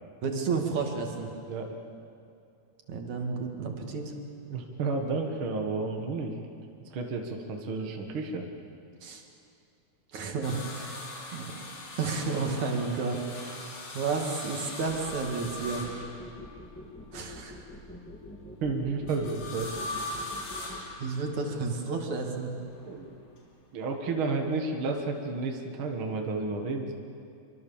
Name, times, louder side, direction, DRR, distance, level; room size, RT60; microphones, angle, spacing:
voice 1, 0.2-1.3 2.9-4.1 9.0-9.2 10.1-11.0 11.3-11.4 12.0-13.7 13.9-15.8 17.1-17.6 21.0-22.5, right 4 dB, 65° right, 2 dB, 3.6 m, -31 dB
voice 2, 1.5-1.8 4.4-6.3 6.9-8.5 18.6-19.7 22.9-23.1 23.7-26.9, right 3 dB, 45° right, 2 dB, 2.2 m, -31 dB
sound 1, 10.4-16.7 19.1-21.6 22.6-23.4 24.8-24.9, left 2 dB, 60° left, 4.4 m, -40 dB
sound 2, 14.9-20.8, left 1 dB, 5° left, 2.2 m, -45 dB
25.5 x 24.5 x 7.3 m, 2.5 s
omnidirectional pair, 3.6 m